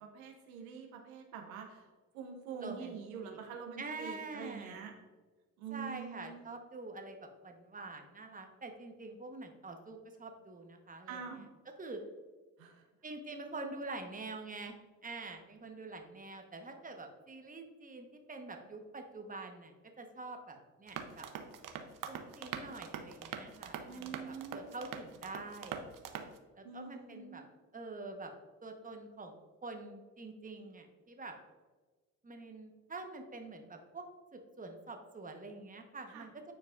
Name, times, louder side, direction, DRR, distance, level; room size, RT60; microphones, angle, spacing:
voice 1, 0.0-4.9 5.6-6.5 11.1-11.5 12.6-12.8 23.9-24.7 26.6-27.4 36.1-36.3, right 6 dB, 85° right, 3 dB, 0.8 m, -46 dB
voice 2, 2.6-3.4 3.8-4.9 5.7-11.2 11.8-12.0 13.0-21.3 22.1-25.8 26.5-27.4 27.7-28.3 28.6-31.4 32.2-34.0 34.3-36.3, right 3 dB, 20° right, 4 dB, 1.0 m, -46 dB
sound 1, 20.9-26.4, right 7 dB, 50° right, 0.7 m, -44 dB
9.4 x 4.6 x 2.4 m, 1.3 s
hypercardioid pair, 50°, 41 cm